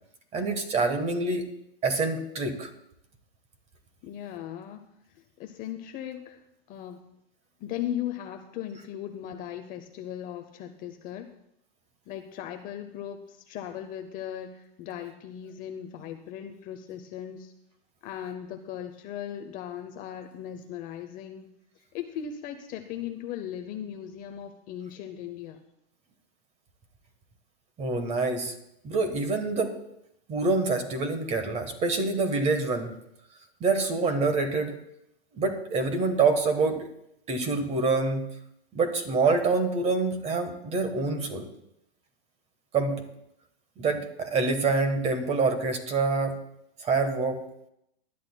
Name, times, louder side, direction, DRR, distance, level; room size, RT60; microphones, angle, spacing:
voice 1, 0.3-1.5 1.8-2.7 27.8-28.5 28.8-29.8 30.3-33.0 33.6-34.8 35.3-36.9 37.3-38.3 38.7-41.5 42.7-43.0 43.8-46.4 46.8-47.4, right 3 dB, 20° right, 8 dB, 1.3 m, -26 dB
voice 2, 4.0-6.4 6.7-7.0 7.6-11.3 12.1-17.5 18.0-21.5 21.9-25.6, left 10 dB, 25° left, 6 dB, 0.6 m, -38 dB
19.5 x 11.0 x 2.2 m, 0.80 s
hypercardioid pair, 145°, 32 cm